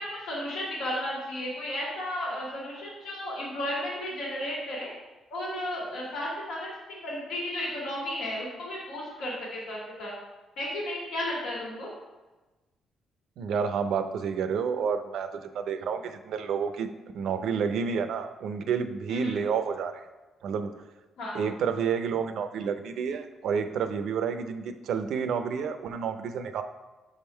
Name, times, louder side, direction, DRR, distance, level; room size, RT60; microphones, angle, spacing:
voice 1, 0.0-4.9 5.3-6.6 7.0-10.1 10.6-11.9 19.1-19.4 21.2-21.4, left 1 dB, 85° left, -4 dB, 1.8 m, -33 dB
voice 2, 13.4-16.9 17.1-20.1 20.4-20.7 21.3-26.6, right 6 dB, 75° right, 9 dB, 0.5 m, -30 dB
6.7 x 3.6 x 4.4 m, 1.2 s
cardioid pair, 90°, 0 cm